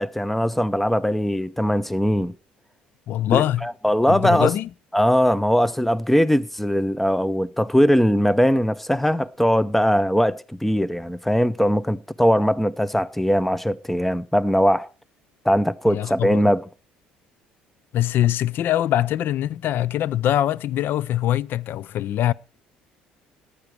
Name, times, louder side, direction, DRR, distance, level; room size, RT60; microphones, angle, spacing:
voice 1, 0.0-2.3 3.3-4.5 4.9-14.9 15.4-16.6, equal, 5° left, 0.7 m, -20 dB
voice 2, 3.1-3.7 4.1-4.7 15.9-16.5 17.9-22.3, left 12 dB, 60° left, 0.5 m, -23 dB
14.5 x 10.0 x 4.5 m
hypercardioid pair, 65°, 4 cm